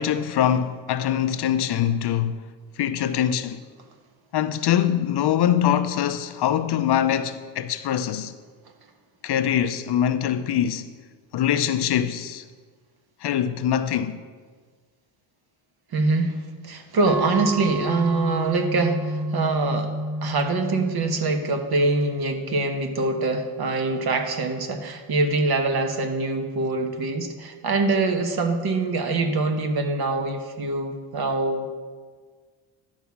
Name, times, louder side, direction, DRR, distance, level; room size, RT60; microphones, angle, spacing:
voice 1, 0.0-2.5 2.8-3.6 4.3-8.3 9.2-10.9 11.3-12.4 13.2-14.2, left 10 dB, 55° left, 0.6 m, -23 dB
voice 2, 15.9-19.9 20.2-31.7, right 3 dB, 50° right, 1.2 m, -24 dB
sound 1, 17.1-22.2, right 1 dB, 5° right, 1.1 m, -30 dB
11.5 x 4.8 x 7.1 m
cardioid pair, 100°, 48 cm